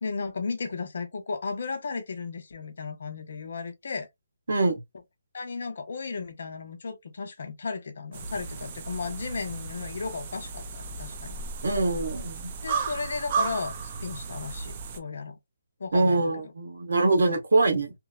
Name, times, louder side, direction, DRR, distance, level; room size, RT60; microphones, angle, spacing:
voice 1, 0.0-4.1 5.3-11.4 12.6-15.4 15.8-16.3, left 4 dB, 50° left, 0.6 m, -35 dB
voice 2, 4.5-4.8 11.6-12.5 15.9-17.9, right 2 dB, 70° right, 1.0 m, -24 dB
sound 1, 8.1-15.0, right 5 dB, 25° right, 0.3 m, -34 dB
2.9 x 2.0 x 2.3 m
hypercardioid pair, 175°, 0 cm